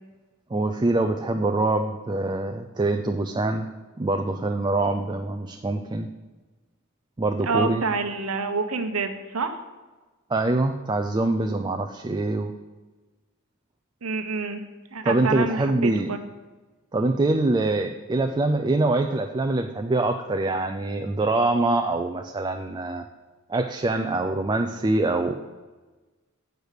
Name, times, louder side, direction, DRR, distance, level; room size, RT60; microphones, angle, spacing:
voice 1, 0.5-3.7 4.0-6.1 7.2-7.8 10.3-12.5 15.0-16.1 16.9-23.1 23.5-25.3, right 2 dB, 20° right, 5 dB, 0.4 m, -24 dB
voice 2, 7.4-9.6 14.0-14.6 14.9-16.2, right 4 dB, 75° right, 7 dB, 0.9 m, -27 dB
7.9 x 5.1 x 6.4 m, 1.3 s
head